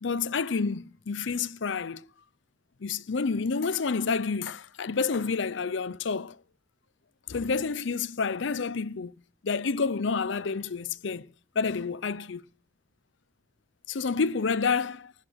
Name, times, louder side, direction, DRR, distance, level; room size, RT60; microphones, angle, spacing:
voice 1, 0.0-2.0 2.8-6.4 7.3-9.1 9.4-11.3 11.6-12.4 13.9-15.1, left 5 dB, 65° left, 0.6 m, -29 dB
19.0 x 7.8 x 6.4 m
head